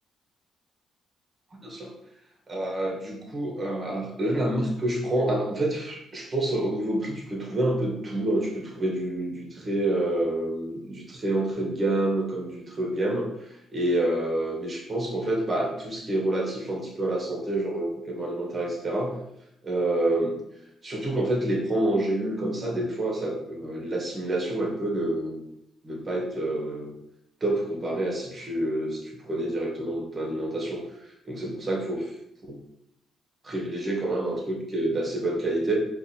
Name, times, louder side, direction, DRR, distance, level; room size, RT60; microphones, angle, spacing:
voice 1, 1.5-1.9 2.5-19.2 19.6-20.3 20.8-25.4 25.8-26.9 27.4-32.2 32.5-32.6 33.4-35.8, right 1 dB, 30° right, -1 dB, 1.2 m, -28 dB
4.8 x 2.3 x 2.8 m, 0.80 s
cardioid pair, 90°, 0 cm